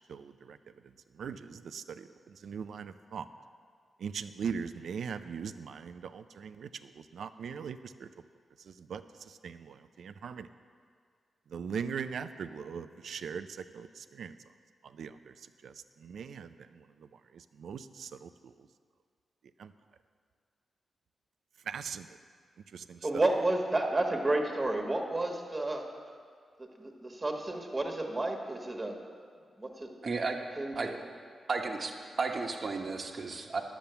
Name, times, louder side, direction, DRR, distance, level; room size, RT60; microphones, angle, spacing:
voice 1, 0.1-0.6 1.1-3.3 4.0-8.1 8.7-10.5 11.5-14.4 14.8-15.3 15.6-16.9 17.3-18.5 19.6-19.7 21.7-22.1 22.7-23.2, right 6 dB, 75° right, 11 dB, 0.4 m, -40 dB
voice 2, 23.0-25.8 26.6-29.0 29.6-29.9 30.5-31.0, right 2 dB, 25° right, 2 dB, 1.4 m, -31 dB
voice 3, 30.0-30.4 30.7-30.9 31.5-33.6, right 4 dB, 55° right, 3 dB, 1.1 m, -33 dB
10.5 x 7.0 x 6.9 m, 2.1 s
cardioid pair, 65°, 0 cm